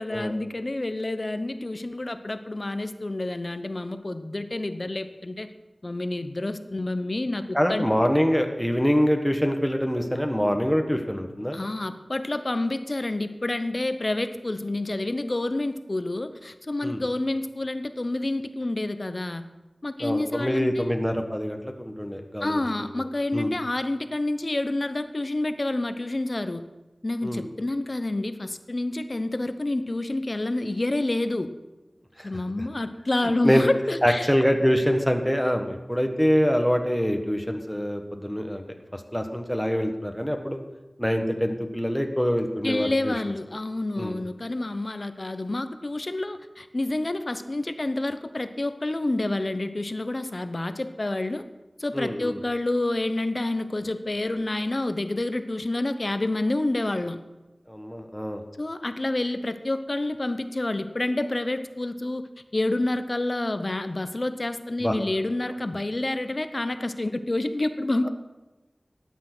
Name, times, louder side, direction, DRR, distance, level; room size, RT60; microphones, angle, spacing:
voice 1, 0.0-5.5 5.8-7.9 11.5-19.4 19.8-20.9 22.4-26.6 27.0-31.5 32.2-34.3 42.6-51.4 51.8-57.2 58.6-62.3 62.5-68.1, left 2 dB, 45° left, 10 dB, 0.9 m, -28 dB
voice 2, 7.5-11.6 16.8-17.0 20.0-22.6 23.3-23.5 27.2-27.5 32.2-32.3 33.4-33.7 34.0-38.6 38.9-40.6 41.0-43.1 44.0-44.2 51.9-52.4 57.7-58.4 64.8-64.9, equal, 5° left, 4 dB, 1.4 m, -25 dB
12.5 x 9.5 x 6.1 m, 1.1 s
wide cardioid pair, 65°, 0 cm